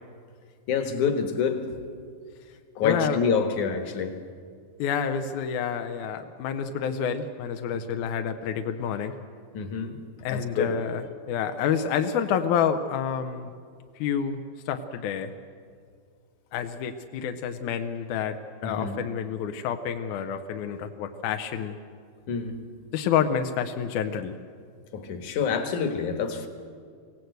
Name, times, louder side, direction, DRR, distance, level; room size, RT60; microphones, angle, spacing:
voice 1, 0.7-1.8 2.8-4.2 7.7-7.8 9.5-10.8 18.6-19.0 22.3-22.6 24.9-26.5, left 6 dB, 60° left, 2.5 m, -27 dB
voice 2, 2.8-3.2 4.8-9.2 10.2-13.5 14.0-14.4 14.7-15.3 16.5-21.8 22.9-24.4, left 7 dB, 75° left, 1.8 m, -28 dB
24.5 x 17.0 x 8.0 m
omnidirectional pair, 4.5 m